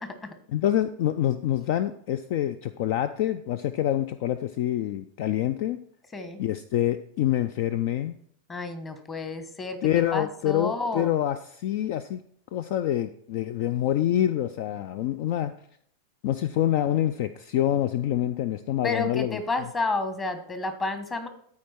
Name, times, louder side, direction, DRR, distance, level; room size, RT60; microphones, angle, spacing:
voice 1, 0.5-5.8 6.4-8.2 9.8-12.2 12.5-15.5 16.2-19.4, left 12 dB, 50° left, 13 dB, 0.4 m, -26 dB
voice 2, 8.5-9.8 10.1-11.1 18.8-21.3, left 3 dB, 20° left, 9 dB, 1.3 m, -30 dB
12.5 x 4.9 x 4.4 m, 0.67 s
figure-of-eight pair, 90°, 0 cm